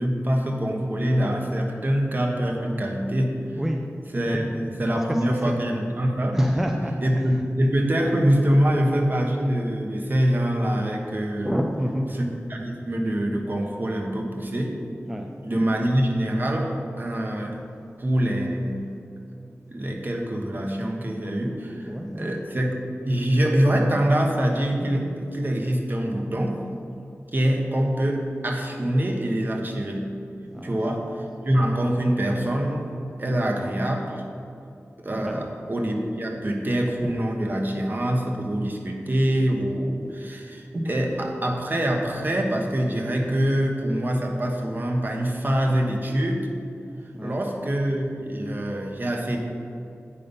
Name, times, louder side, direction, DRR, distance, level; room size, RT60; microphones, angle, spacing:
voice 1, 0.0-3.4 4.1-6.4 7.0-11.5 12.1-14.7 15.4-17.6 18.0-19.0 19.7-22.8 23.0-26.6 27.3-30.1 30.6-32.9 33.2-34.2 35.0-46.5 47.2-49.4, right 1 dB, 40° right, 1 dB, 1.1 m, -24 dB
voice 2, 3.5-3.8 4.3-4.6 4.9-5.2 5.4-5.6 6.3-7.3 8.5-8.6 11.4-12.1 15.1-15.7 21.9-22.4 30.5-30.8 35.2-35.4 40.0-40.1 47.1-47.4, equal, 5° right, 2 dB, 0.5 m, -28 dB
8.4 x 5.5 x 5.4 m, 2.5 s
wide cardioid pair, 75°, 5 cm